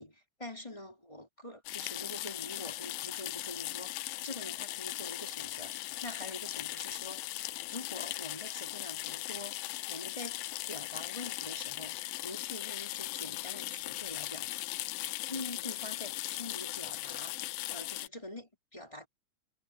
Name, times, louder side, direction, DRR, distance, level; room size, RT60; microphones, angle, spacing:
voice 1, 0.0-10.4 10.7-14.6 15.1-19.1, left 1 dB, 10° left, 4.2 m, -45 dB
sound 1, 1.7-18.1, left 17 dB, 85° left, 2.4 m, -39 dB
omnidirectional pair, 4.0 m